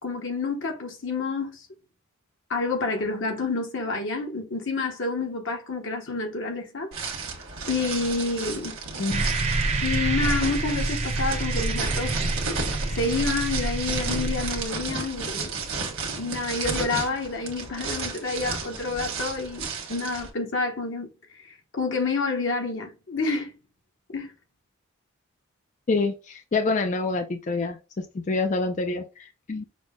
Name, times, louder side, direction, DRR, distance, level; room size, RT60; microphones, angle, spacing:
voice 1, 0.0-1.6 2.5-6.9 7.7-8.7 9.8-12.2 12.9-15.6 16.2-21.1 21.3-23.5 24.1-24.3, left 3 dB, 60° left, 1.0 m, -28 dB
sound 1, 6.9-20.3, right 4 dB, 70° right, 1.3 m, -33 dB
sound 2, 9.1-14.7, right 2 dB, 30° right, 0.7 m, -27 dB
voice 2, 25.9-29.6, left 3 dB, 35° left, 0.4 m, -27 dB
6.1 x 2.1 x 3.6 m
head